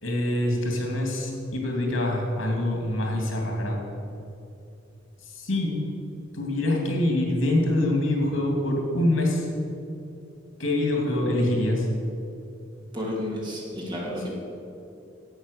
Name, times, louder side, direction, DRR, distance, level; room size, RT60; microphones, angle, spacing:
voice 1, 0.0-3.8 5.2-5.8 6.3-9.5 10.6-11.9, left 1 dB, 85° left, 0 dB, 2.6 m, -25 dB
voice 2, 12.9-14.3, left 1 dB, 25° right, -4 dB, 2.5 m, -31 dB
11.0 x 8.4 x 6.6 m, 2.7 s
head